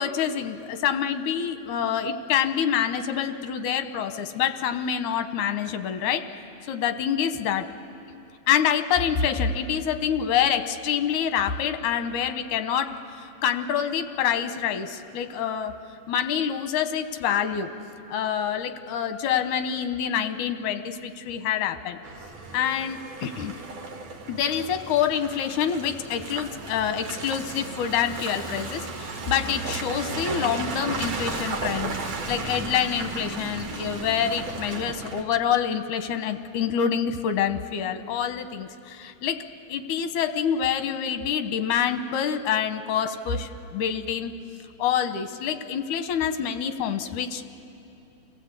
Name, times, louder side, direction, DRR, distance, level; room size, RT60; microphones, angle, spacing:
voice 1, 0.0-6.3 6.7-7.7 8.5-15.8 16.1-17.7 18.1-22.0 22.5-23.5 24.3-31.9 32.3-39.4 39.7-44.3 44.8-47.4, left 8 dB, 90° left, 9 dB, 2.4 m, -26 dB
Car passing by / Engine, 22.0-35.2, right 3 dB, 50° right, 2.0 m, -34 dB
28.5 x 17.5 x 8.2 m, 2.8 s
omnidirectional pair, 3.4 m